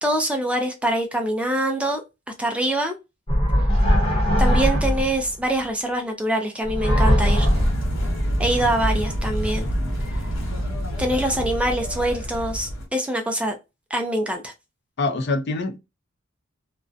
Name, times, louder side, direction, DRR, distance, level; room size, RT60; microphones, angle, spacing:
voice 1, 0.0-2.0 2.4-2.9 4.4-7.5 8.4-9.7 11.0-13.6 13.9-14.5, right 1 dB, 5° right, 0.4 m, -24 dB
sound 1, 3.3-5.3 6.7-8.0, equal, 25° left, 0.9 m, -19 dB
sound 2, 7.2-12.9, equal, 80° left, 1.0 m, -27 dB
voice 2, 15.0-15.8, left 3 dB, 55° left, 0.5 m, -25 dB
2.5 x 2.1 x 2.3 m
head